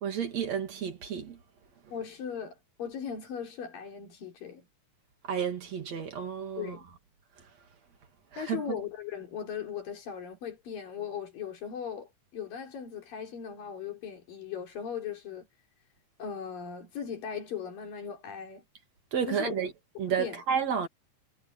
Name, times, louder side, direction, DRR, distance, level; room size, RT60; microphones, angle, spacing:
voice 1, 0.0-1.4 5.2-6.8 8.3-8.8 19.1-19.7 20.0-20.9, right 7 dB, 55° right, 3.6 m, -31 dB
voice 2, 1.9-4.6 6.6-6.9 8.4-15.5 16.2-18.6 19.3-19.5 20.2-20.4, left 7 dB, 85° left, 5.5 m, -38 dB
omnidirectional pair, 3.9 m